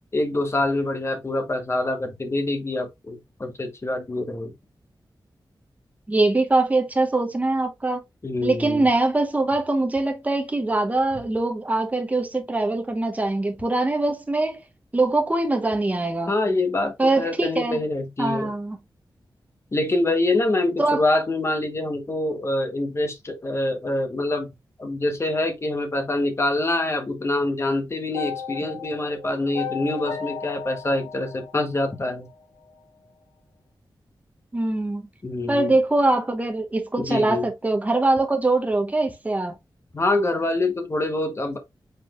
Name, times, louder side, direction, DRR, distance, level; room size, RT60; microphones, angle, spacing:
voice 1, 0.1-4.5 8.2-8.9 16.3-18.5 19.7-24.5 24.8-32.3 35.2-35.7 37.0-37.5 39.9-41.6, left 2 dB, 35° left, 1.1 m, -25 dB
voice 2, 6.1-8.0 8.4-14.6 14.9-16.3 17.0-17.8 18.2-18.8 20.8-21.0 34.5-35.1 35.5-39.5, right 2 dB, 20° right, 0.9 m, -22 dB
sound 1, 28.1-32.3, left 7 dB, 85° left, 1.5 m, -35 dB
5.2 x 4.1 x 2.4 m
wide cardioid pair, 140°, 8 cm